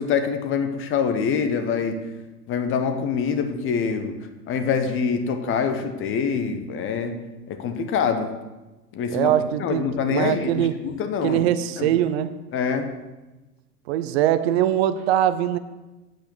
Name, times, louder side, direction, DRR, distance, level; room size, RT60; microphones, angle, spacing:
voice 1, 0.0-2.0 2.5-8.3 8.9-9.3 9.6-11.5 11.8-11.9 12.5-12.9, left 6 dB, 25° left, 8 dB, 1.1 m, -25 dB
voice 2, 9.1-10.7 11.2-12.3 13.9-15.6, right 11 dB, 40° right, 13 dB, 0.7 m, -22 dB
9.3 x 8.1 x 6.4 m, 1.1 s
figure-of-eight pair, 90°, 48 cm